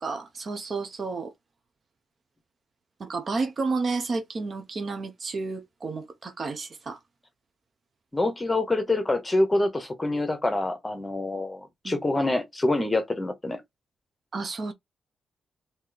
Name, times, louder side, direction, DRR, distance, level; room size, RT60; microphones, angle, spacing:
voice 1, 0.0-1.3 3.0-7.0 11.8-12.0 14.3-14.7, right 3 dB, 40° right, 0.6 m, -31 dB
voice 2, 8.1-13.6, left 2 dB, 15° left, 0.9 m, -26 dB
3.1 x 2.7 x 3.9 m
wide cardioid pair, 145°, 0 cm